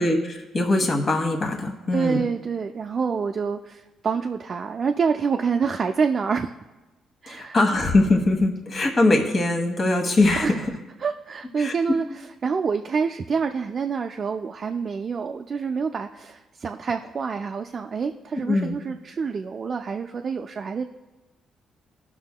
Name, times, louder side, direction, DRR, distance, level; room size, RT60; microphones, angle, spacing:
voice 1, 0.0-2.2 7.3-10.5 11.6-11.7 18.5-18.8, left 2 dB, 45° left, 3 dB, 1.4 m, -22 dB
voice 2, 1.9-6.6 7.2-7.6 10.4-10.5 11.0-12.0 12.4-20.8, right 5 dB, 45° right, 3 dB, 0.4 m, -27 dB
18.0 x 6.1 x 2.2 m, 1.1 s
cardioid pair, 90°, 0 cm